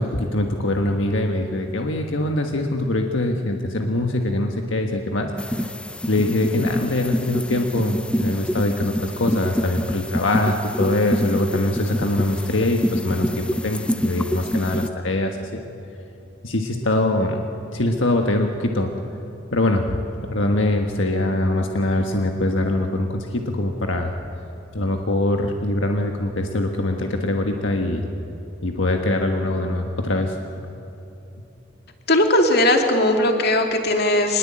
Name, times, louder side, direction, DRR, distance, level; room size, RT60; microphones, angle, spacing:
voice 1, 0.0-5.3 6.1-15.6 16.4-17.4 17.7-18.9 19.5-24.1 24.7-28.0 28.6-30.4, left 1 dB, 80° left, 3 dB, 1.5 m, -23 dB
sound 1, 5.4-14.9, equal, 5° left, 0.6 m, -27 dB
voice 2, 32.1-34.4, left 1 dB, 55° left, 4 dB, 2.5 m, -18 dB
24.5 x 20.5 x 8.7 m, 2.9 s
head